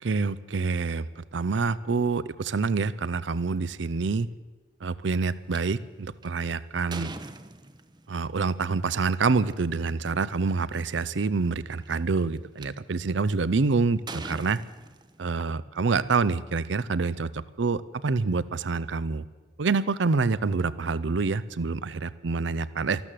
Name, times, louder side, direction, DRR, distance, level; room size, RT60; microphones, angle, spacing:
voice 1, 0.0-4.3 4.8-7.1 8.1-14.6 15.2-19.2 19.6-23.0, right 4 dB, 70° right, 17 dB, 0.6 m, -27 dB
sound 1, 5.5-5.6 6.2-8.1 9.4-9.5 10.2-10.3 10.5-10.9 11.7-12.7 13.3-13.6 14.1-15.5, right 3 dB, 25° right, 0.7 m, -41 dB
13.5 x 13.0 x 7.6 m, 1.3 s
head